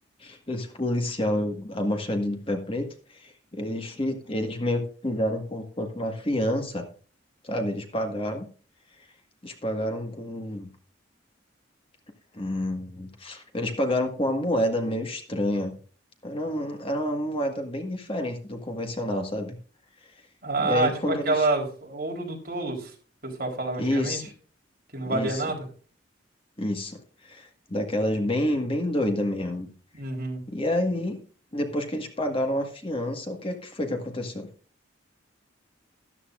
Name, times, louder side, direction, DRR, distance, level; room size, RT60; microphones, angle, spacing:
voice 1, 0.2-6.8 7.4-8.5 9.4-10.7 12.3-15.7 16.2-19.5 20.6-21.5 23.8-24.2 25.0-25.4 26.6-29.7 30.5-31.2 31.5-34.5, left 1 dB, 30° left, 4 dB, 1.7 m, -28 dB
voice 2, 20.4-22.9 23.2-24.2 24.9-25.6 29.9-30.4, right 2 dB, 50° right, 0 dB, 3.7 m, -28 dB
13.5 x 13.0 x 2.5 m, 0.40 s
head